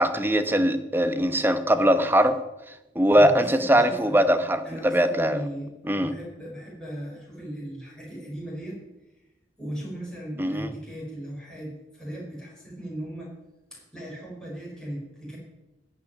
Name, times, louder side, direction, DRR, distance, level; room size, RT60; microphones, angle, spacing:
voice 1, 0.0-2.4 2.9-5.4 5.8-6.1 10.4-10.7, equal, 10° right, 9 dB, 0.9 m, -21 dB
voice 2, 3.1-4.2 4.6-5.7 6.0-8.8 9.6-13.3 13.7-15.4, right 1 dB, 5° left, -5 dB, 5.3 m, -37 dB
14.5 x 5.9 x 10.0 m, 0.99 s
head